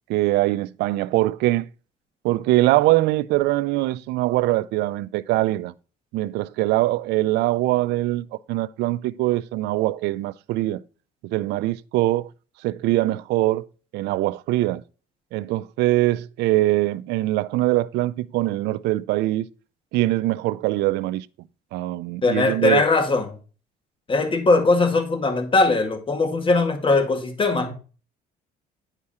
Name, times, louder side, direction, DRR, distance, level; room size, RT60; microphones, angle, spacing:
voice 1, 0.1-1.7 2.2-5.7 6.1-10.8 11.2-12.3 12.6-13.7 13.9-14.8 15.3-19.5 19.9-21.3 21.7-22.8, right 17 dB, 85° right, 0.5 m, -22 dB
voice 2, 22.2-23.3 24.1-27.7, left 3 dB, 30° left, 2.1 m, -20 dB
9.8 x 4.8 x 4.2 m
cardioid pair, 110°, 17 cm